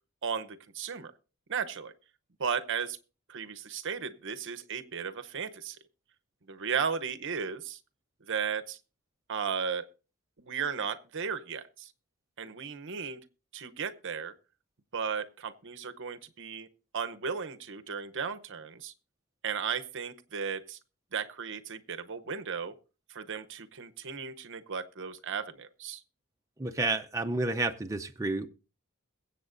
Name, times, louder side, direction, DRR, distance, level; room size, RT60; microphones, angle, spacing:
voice 1, 0.2-1.1 1.5-1.9 2.4-3.0 3.3-5.8 6.5-7.8 8.3-8.8 9.3-9.8 10.4-11.9 12.4-13.2 13.5-14.3 14.9-16.7 16.9-18.9 19.4-20.8 21.1-22.7 23.1-26.0, right 6 dB, 55° right, 11 dB, 0.8 m, -35 dB
voice 2, 26.6-28.5, right 2 dB, 15° right, 5 dB, 0.5 m, -30 dB
22.0 x 8.0 x 2.6 m, 0.34 s
head